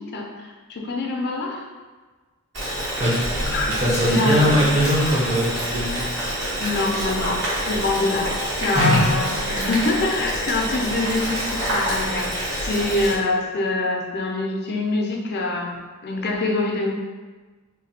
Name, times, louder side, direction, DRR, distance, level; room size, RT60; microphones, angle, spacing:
voice 1, 0.0-1.6 3.4-3.8 4.1-5.2 6.6-16.9, left 2 dB, 50° left, 1 dB, 0.5 m, -25 dB
Boiling, 2.5-13.2, equal, 55° right, 1.3 m, -27 dB
voice 2, 3.0-6.1 8.7-9.0 9.6-9.7, equal, 30° right, -9 dB, 0.9 m, -21 dB
3.2 x 2.2 x 4.1 m, 1.3 s
head